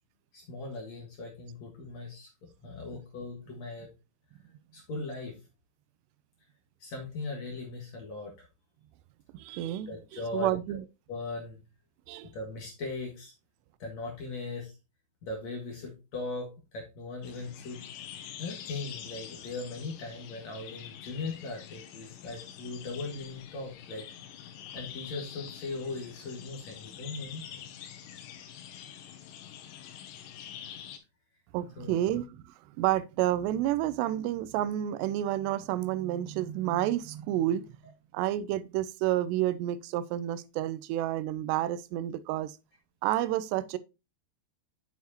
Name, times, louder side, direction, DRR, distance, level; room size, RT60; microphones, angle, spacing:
voice 1, 0.3-2.3 2.6-3.9 4.7-5.3 6.8-8.5 9.5-9.6 9.9-10.8 11.1-11.6 12.3-13.3 13.8-14.7 15.2-17.8 18.4-24.0 24.7-27.6 31.8-32.1, left 3 dB, 55° left, 2.2 m, -39 dB
voice 2, 9.3-10.8 12.1-12.3 31.5-32.4 32.8-37.7 38.1-42.6 43.0-43.8, right 13 dB, 85° right, 2.7 m, -30 dB
sound 1, 17.2-31.0, left 9 dB, 85° left, 3.1 m, -46 dB
7.5 x 7.2 x 2.8 m
omnidirectional pair, 4.9 m